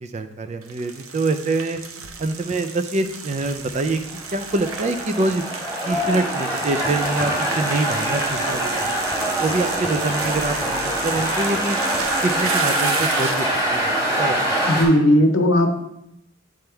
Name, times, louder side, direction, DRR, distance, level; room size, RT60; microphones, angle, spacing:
voice 1, 0.0-1.8 2.2-4.0 4.3-5.4 5.9-9.0 9.4-11.8 12.2-14.6, right 2 dB, 30° right, 9 dB, 0.4 m, -25 dB
sound 1, 0.6-13.6, right 5 dB, 80° right, 0.7 m, -32 dB
sound 2, 4.1-14.8, right 1 dB, 10° right, 1.8 m, -24 dB
voice 2, 14.7-15.7, left 1 dB, 60° left, 6 dB, 0.8 m, -16 dB
7.9 x 3.6 x 4.4 m, 0.81 s
head